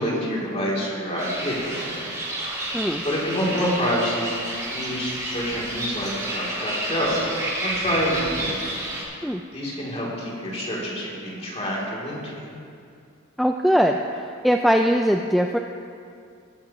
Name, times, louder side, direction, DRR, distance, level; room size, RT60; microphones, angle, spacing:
voice 1, 0.0-2.1 2.5-2.6 3.0-7.2 7.6-8.6 9.5-12.5, equal, 30° left, -5 dB, 3.1 m, -27 dB
sound 1, 1.2-9.0, right 1 dB, 15° right, 2.9 m, -30 dB
voice 2, 13.4-15.6, equal, ahead, 3 dB, 0.3 m, -21 dB
20.5 x 9.6 x 3.1 m, 2.4 s
head